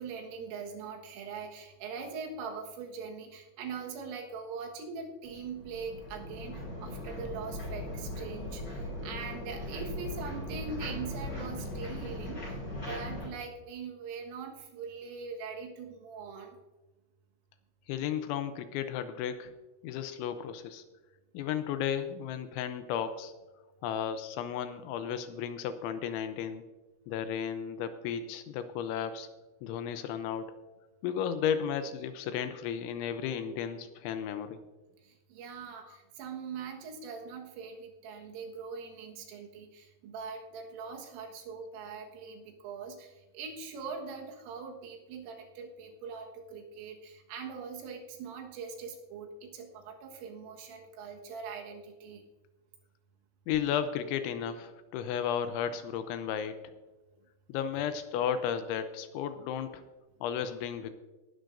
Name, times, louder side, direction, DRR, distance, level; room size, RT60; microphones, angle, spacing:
voice 1, 0.0-16.6 35.0-52.3, right 5 dB, 90° right, 2 dB, 4.1 m, -42 dB
sound 1, 5.2-13.3, left 1 dB, 20° left, 4.8 m, -39 dB
voice 2, 17.9-19.5 19.8-20.8 21.3-23.3 23.8-26.6 27.1-29.3 29.6-30.6 31.0-34.6 35.9-36.0 53.5-56.6 57.5-59.8 60.2-60.9, left 8 dB, 80° left, 10 dB, 2.9 m, -34 dB
19.5 x 11.0 x 2.6 m, 1.1 s
omnidirectional pair, 5.7 m